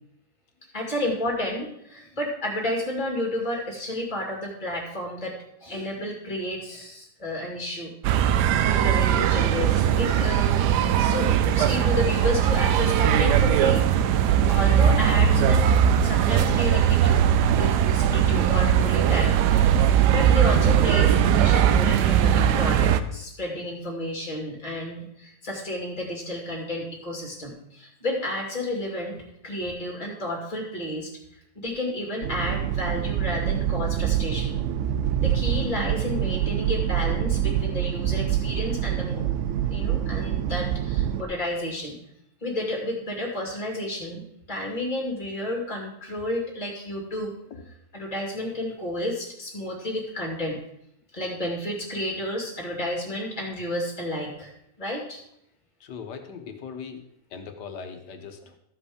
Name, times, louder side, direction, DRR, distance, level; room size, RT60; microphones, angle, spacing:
voice 1, 0.7-5.3 5.6-7.9 8.6-10.6 11.0-17.3 17.5-19.8 20.1-29.2 29.4-34.6 35.2-39.2 39.7-42.0 42.4-47.3 47.9-50.6 51.1-54.5 54.8-55.2, left 1 dB, 25° left, -1 dB, 2.5 m, -31 dB
sound 1, 8.0-23.0, right 9 dB, 85° right, 1.2 m, -20 dB
sound 2, 32.2-41.2, right 10 dB, 70° right, 0.7 m, -26 dB
voice 2, 55.8-57.0 57.3-58.6, left 6 dB, 85° left, 6 dB, 1.7 m, -39 dB
14.0 x 5.3 x 5.0 m, 0.74 s
omnidirectional pair, 1.8 m